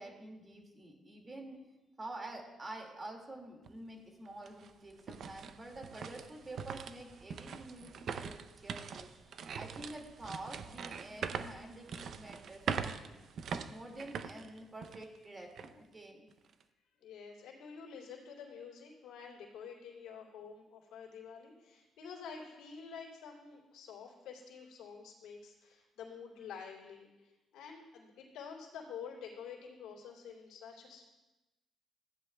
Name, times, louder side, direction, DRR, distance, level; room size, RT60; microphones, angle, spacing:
voice 1, 0.0-1.7 2.0-16.3, right 2 dB, 30° right, 2 dB, 2.0 m, -48 dB
sound 1, 3.6-3.7 4.3-15.2 15.6-15.7 16.3-16.6, right 6 dB, 60° right, 0.5 m, -42 dB
voice 2, 17.0-31.1, left 6 dB, 90° left, -3 dB, 2.6 m, -49 dB
15.5 x 10.0 x 2.2 m, 1.1 s
cardioid pair, 90°, 0 cm